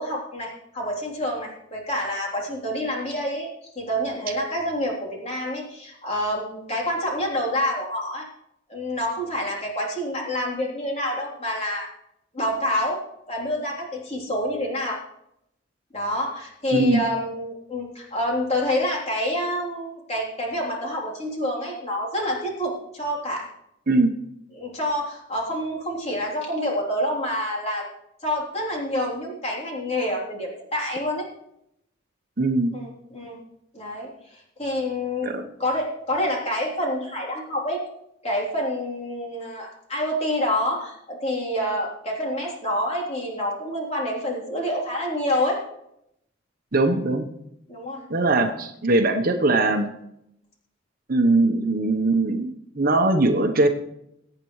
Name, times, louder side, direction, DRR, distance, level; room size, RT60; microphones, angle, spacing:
voice 1, 0.0-3.5 3.8-8.3 8.7-11.9 12.3-13.0 13.3-15.0 15.9-23.5 24.5-27.9 28.2-31.2 32.7-33.4 33.7-35.3 35.6-37.8 38.2-45.6 46.9-47.0 47.7-48.0 48.4-48.5, left 1 dB, 35° left, -3 dB, 3.4 m, -27 dB
voice 2, 16.7-17.0 23.9-24.1 32.4-32.7 35.2-35.4 46.7-47.3 48.1-49.9 51.1-53.7, right 2 dB, 50° right, 5 dB, 1.0 m, -21 dB
22.0 x 8.9 x 3.2 m, 0.80 s
head